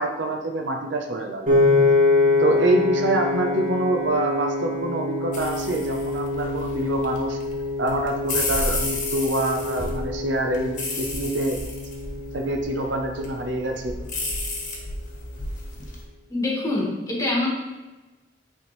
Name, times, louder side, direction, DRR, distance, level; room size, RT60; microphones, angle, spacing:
voice 1, 0.0-1.5 2.4-7.4 7.8-11.6 12.3-14.0, right 2 dB, 85° right, 3 dB, 0.8 m, -26 dB
Piano, 1.5-13.7, left 3 dB, 45° right, 1.6 m, -25 dB
sound 1, 5.3-16.0, left 2 dB, 45° left, 1.2 m, -32 dB
voice 2, 16.3-17.5, left 2 dB, 20° left, -3 dB, 1.3 m, -25 dB
8.8 x 3.6 x 3.2 m, 1.1 s
head